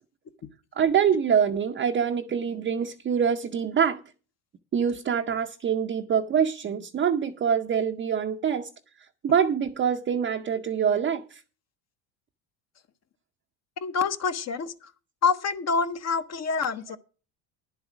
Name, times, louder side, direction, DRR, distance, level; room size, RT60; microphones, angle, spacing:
voice 1, 0.8-4.0 4.7-8.7 9.2-11.4, right 7 dB, 25° right, 0.6 m, -25 dB
voice 2, 13.8-14.9 15.2-17.0, left 5 dB, 35° left, 0.8 m, -27 dB
10.5 x 8.0 x 6.1 m
supercardioid pair, 115°, 47 cm